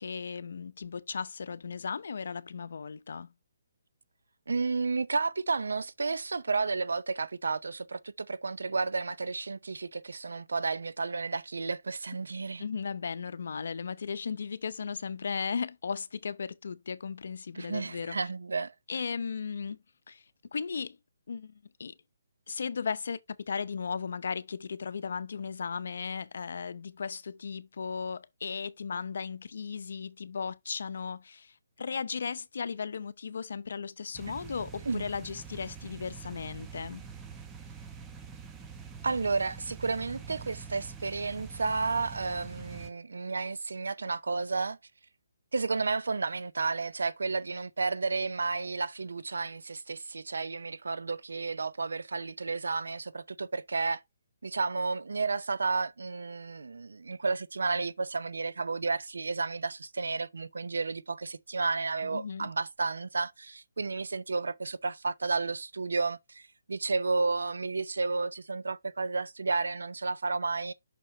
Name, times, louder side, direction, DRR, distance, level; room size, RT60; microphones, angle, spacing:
voice 1, 0.0-3.3 12.6-18.2 18.9-19.8 20.1-20.2 20.5-21.0 21.3-21.9 22.5-23.2 23.5-37.0 62.1-62.5, left 5 dB, 65° left, 0.6 m, -36 dB
voice 2, 4.5-12.6 17.5-18.7 34.9-35.0 39.0-44.8 45.5-54.0 54.4-70.7, right 4 dB, 85° right, 0.6 m, -32 dB
sound 1, 34.1-42.9, right 6 dB, 15° right, 0.8 m, -45 dB
5.9 x 4.4 x 4.1 m
hypercardioid pair, 155°, 0 cm